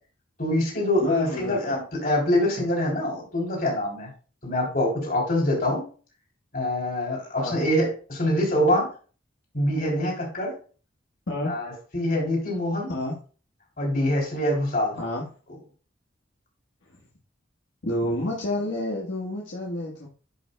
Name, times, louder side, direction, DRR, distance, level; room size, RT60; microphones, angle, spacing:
voice 1, 0.4-4.1 4.4-5.9 6.5-8.9 9.5-10.5 11.5-12.9 13.8-15.0, left 1 dB, 50° left, -1 dB, 3.5 m, -25 dB
voice 2, 1.0-1.7 7.4-7.6 11.3-11.5 12.9-13.1 15.0-15.2 17.8-20.1, left 1 dB, 70° left, -3 dB, 1.4 m, -29 dB
10.5 x 5.4 x 2.3 m, 0.38 s
head